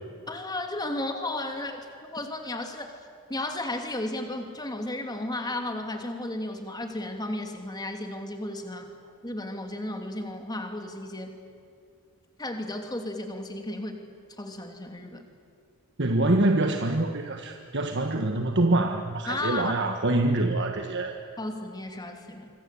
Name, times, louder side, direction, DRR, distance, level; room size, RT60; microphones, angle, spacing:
voice 1, 0.3-1.8 2.1-2.9 3.3-8.9 9.2-11.3 12.4-14.0 14.4-15.2 19.3-19.7 21.4-22.5, left 1 dB, 20° left, 4 dB, 2.9 m, -34 dB
voice 2, 16.0-21.2, right 2 dB, 55° right, 5 dB, 1.5 m, -25 dB
26.5 x 24.5 x 8.5 m, 2.2 s
head